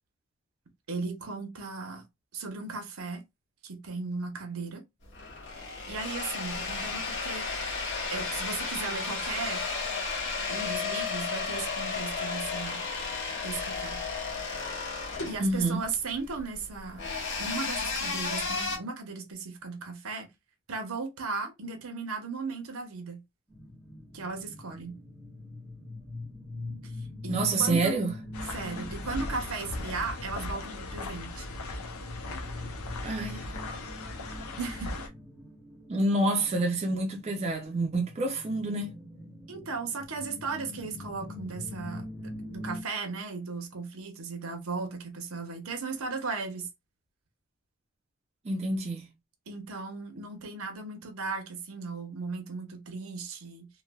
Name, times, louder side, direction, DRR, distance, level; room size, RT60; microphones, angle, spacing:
voice 1, 0.9-2.0 2.3-3.2 3.6-4.8 5.9-7.7 8.1-9.6 10.5-12.8 13.4-14.0 15.3-17.0 17.4-20.3 20.7-23.2 24.1-25.0 26.8-28.0 28.5-31.5 34.6-35.1 39.5-46.7 49.5-53.7, right 4 dB, 75° right, 0.8 m, -36 dB
sound 1, 5.0-18.8, left 4 dB, 55° left, 0.9 m, -33 dB
voice 2, 15.4-15.8 27.3-28.1 33.0-33.5 35.9-38.9 48.4-49.1, right 2 dB, 30° right, 0.5 m, -28 dB
sound 2, 23.5-42.8, left 2 dB, 5° left, 0.9 m, -44 dB
sound 3, 28.3-35.1, left 2 dB, 80° left, 0.6 m, -38 dB
3.1 x 2.1 x 2.2 m
head